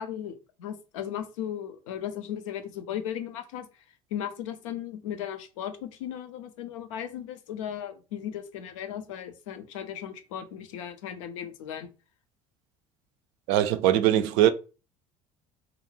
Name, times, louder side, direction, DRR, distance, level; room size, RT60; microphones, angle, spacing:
voice 1, 0.0-3.7 4.1-11.9, left 9 dB, 70° left, 0.5 m, -36 dB
voice 2, 13.5-14.5, right 12 dB, 65° right, 0.4 m, -21 dB
2.4 x 2.2 x 3.1 m
figure-of-eight pair, 60°, 17 cm